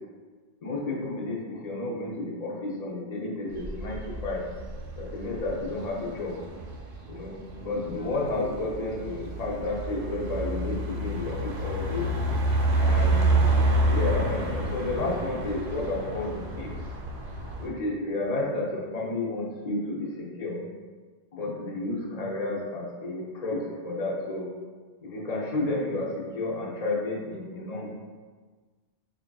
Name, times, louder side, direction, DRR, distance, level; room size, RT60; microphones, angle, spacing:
voice 1, 0.6-4.4 5.0-6.3 7.1-7.3 7.6-12.1 12.8-13.4 13.9-16.8 17.6-20.6 21.3-24.5 25.0-26.1 26.3-27.9, left 2 dB, 45° left, -4 dB, 0.6 m, -31 dB
sound 1, 3.5-17.7, right 2 dB, 85° right, 0.8 m, -29 dB
4.4 x 2.4 x 2.2 m, 1.4 s
omnidirectional pair, 1.1 m